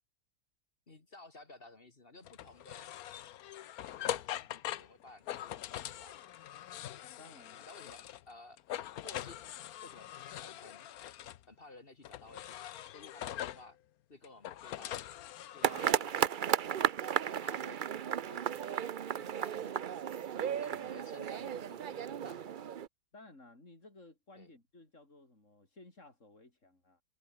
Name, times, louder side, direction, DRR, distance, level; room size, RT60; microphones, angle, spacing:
voice 1, 0.9-2.9 4.1-6.2 7.7-8.6 9.0-9.4 9.8-10.9 11.5-13.8 14.1-16.5 17.4-17.8 18.1-19.9 20.4-22.8 24.4-24.5, left 2 dB, 40° left, 2.2 m, -55 dB
sound 1, 2.3-8.3 8.6-11.4 12.0-13.7 14.2-15.9, left 12 dB, 80° left, 1.2 m, -42 dB
voice 2, 7.2-7.7 20.3-20.6 23.1-27.0, left 2 dB, 55° left, 6.0 m, -57 dB
sound 2, 15.6-22.9, right 9 dB, 50° right, 0.6 m, -34 dB
omnidirectional pair, 1.5 m